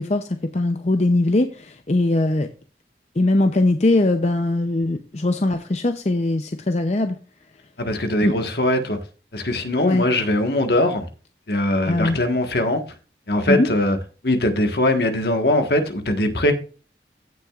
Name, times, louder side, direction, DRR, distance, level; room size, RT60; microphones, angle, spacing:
voice 1, 0.0-2.5 3.2-7.2 8.2-8.3 9.8-10.0 11.9-12.2 13.5-13.7, left 2 dB, 40° left, 0.6 m, -20 dB
voice 2, 7.8-9.0 9.3-11.1 11.5-12.8 13.3-14.0 14.2-16.5, left 1 dB, 65° left, 1.4 m, -21 dB
15.5 x 6.2 x 2.4 m
head